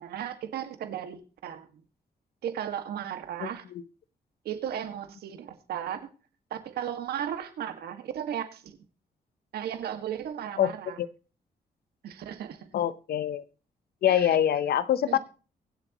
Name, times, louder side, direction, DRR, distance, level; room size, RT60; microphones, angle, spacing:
voice 1, 0.0-1.7 2.4-3.6 4.5-6.1 6.5-8.8 9.5-11.0 12.0-12.7 14.1-14.4 15.1-15.2, right 9 dB, 90° right, 8 dB, 1.9 m, -35 dB
voice 2, 3.4-3.8 10.6-10.7 11.0-11.1 12.7-13.4 14.0-15.2, left 10 dB, 80° left, 15 dB, 0.9 m, -25 dB
23.5 x 8.0 x 3.0 m, 0.36 s
cardioid pair, 85°, 16 cm